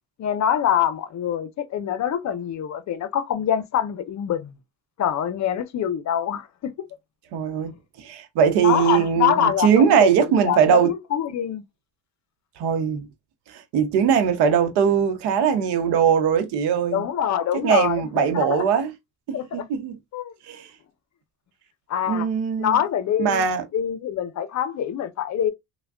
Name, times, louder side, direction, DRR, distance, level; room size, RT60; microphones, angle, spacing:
voice 1, 0.2-4.5 5.0-6.9 8.6-11.6 16.9-18.7 19.3-19.7 20.1-20.3 21.9-22.3 22.6-23.5 23.7-25.5, left 9 dB, 45° left, 0.6 m, -25 dB
voice 2, 7.3-10.9 12.6-13.1 13.5-17.1 17.6-18.9 19.3-20.0 20.5-20.7 22.1-22.8 23.2-23.6, right 7 dB, 75° right, 0.8 m, -20 dB
3.3 x 2.2 x 2.3 m
supercardioid pair, 75°, 41 cm